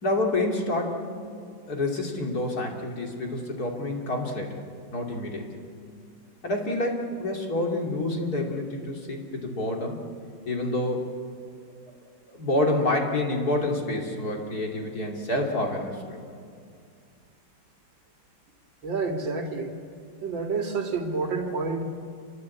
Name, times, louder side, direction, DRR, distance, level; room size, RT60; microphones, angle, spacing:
voice 1, 0.0-1.0 1.7-4.6 4.9-5.5 6.4-10.0 10.5-11.1 12.3-16.2, left 1 dB, 50° left, 1 dB, 3.3 m, -28 dB
voice 2, 18.8-19.7 20.2-21.8, right 4 dB, 65° right, 4 dB, 2.8 m, -29 dB
27.5 x 24.0 x 8.5 m, 2.3 s
omnidirectional pair, 2.2 m